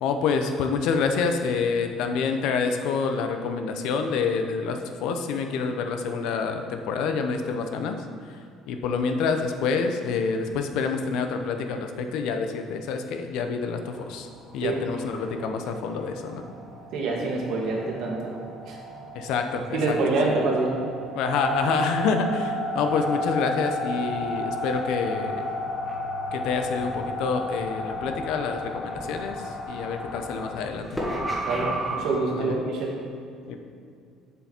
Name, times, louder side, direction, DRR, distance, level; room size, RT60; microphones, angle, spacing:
voice 1, 0.0-8.0 8.7-14.3 14.5-16.4 19.1-20.0 20.2-20.3 21.1-25.4 26.3-29.4 29.7-31.0 32.4-32.6 33.5-33.6, left 5 dB, 75° left, 6 dB, 0.7 m, -27 dB
sound 1, 14.0-32.0, left 1 dB, 5° left, 1.5 m, -33 dB
voice 2, 16.9-18.3 18.6-18.8 19.7-20.7 31.5-32.9, right 3 dB, 65° right, -2 dB, 1.7 m, -26 dB
7.3 x 6.9 x 4.4 m, 2.3 s
cardioid pair, 135°, 0 cm